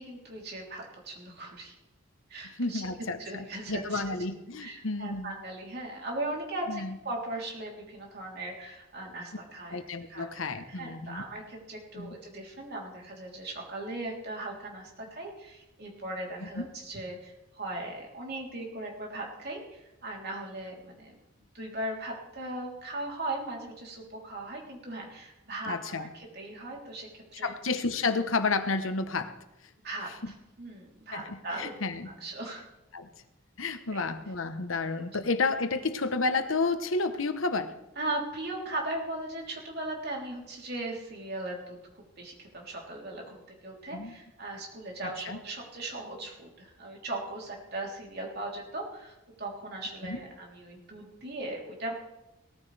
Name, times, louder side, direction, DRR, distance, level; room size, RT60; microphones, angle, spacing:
voice 1, 0.0-1.8 2.3-2.8 3.2-4.0 4.6-9.8 10.1-10.3 10.7-21.2 21.5-27.5 29.8-31.7 32.1-32.7 33.9-34.0 38.0-41.8 42.2-51.9, right 2 dB, 50° right, -1 dB, 3.5 m, -38 dB
voice 2, 2.6-5.3 6.7-6.9 9.7-11.2 12.0-12.2 16.5-16.7 25.7-26.1 27.4-29.3 30.2-30.3 31.1-32.1 32.9-33.1 33.6-37.7 43.9-44.1 45.0-45.4 50.0-50.2, left 3 dB, 75° left, 9 dB, 1.1 m, -31 dB
18.5 x 14.0 x 3.4 m, 0.95 s
head